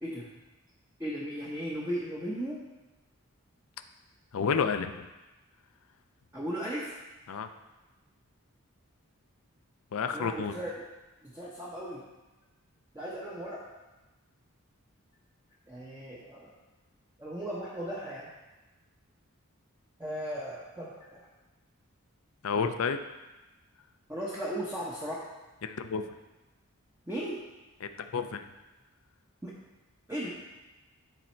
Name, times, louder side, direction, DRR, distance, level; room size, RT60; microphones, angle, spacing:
voice 1, 1.0-2.6 6.3-6.9 10.1-10.8 11.2-12.0 12.9-13.7 15.7-16.5 17.2-18.3 20.0-21.2 24.1-25.3 27.1-27.4 29.4-29.5 30.1-30.4, equal, 10° right, -6 dB, 0.8 m, -36 dB
voice 2, 4.3-5.1 7.3-7.5 9.9-10.5 22.4-23.0 25.6-26.0 27.8-28.5, left 5 dB, 70° left, 8 dB, 0.4 m, -30 dB
10.0 x 4.2 x 4.4 m, 1.1 s
head